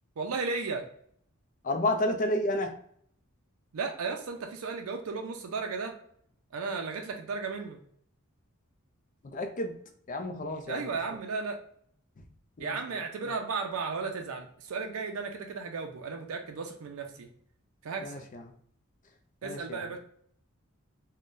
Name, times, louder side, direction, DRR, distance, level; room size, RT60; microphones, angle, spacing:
voice 1, 0.2-0.9 3.7-6.0 6.5-7.8 10.7-11.6 12.6-17.3 17.8-18.2 19.4-20.0, right 4 dB, 75° right, 3 dB, 0.4 m, -34 dB
voice 2, 1.6-2.7 9.3-9.7 10.1-11.0 12.2-12.3 12.6-13.0 18.0-18.4 19.4-19.8, left 1 dB, 35° left, 5 dB, 0.4 m, -31 dB
3.7 x 2.1 x 2.5 m, 0.65 s
head